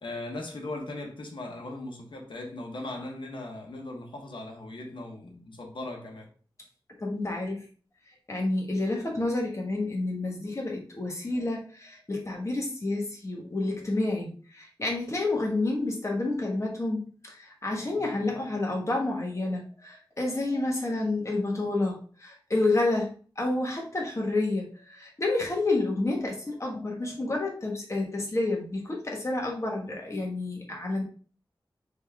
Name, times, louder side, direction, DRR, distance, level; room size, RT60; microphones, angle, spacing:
voice 1, 0.0-6.3, left 2 dB, 70° left, 1.1 m, -38 dB
voice 2, 7.0-7.6 8.3-31.0, left 2 dB, 35° left, 1.4 m, -29 dB
4.0 x 3.6 x 3.5 m
wide cardioid pair, 80°, 8 cm